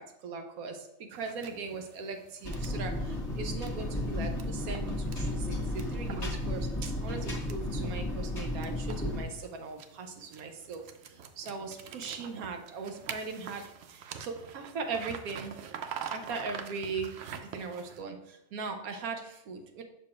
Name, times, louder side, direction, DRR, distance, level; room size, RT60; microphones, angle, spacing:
voice 1, 0.0-15.5 16.1-17.1 17.4-19.8, right 4 dB, 85° right, 5 dB, 1.1 m, -39 dB
sound 1, 1.1-18.0, right 7 dB, 65° right, 0.7 m, -46 dB
sound 2, 2.4-9.2, left 1 dB, 30° left, 1.1 m, -33 dB
6.5 x 6.0 x 2.4 m, 0.87 s
omnidirectional pair, 1.5 m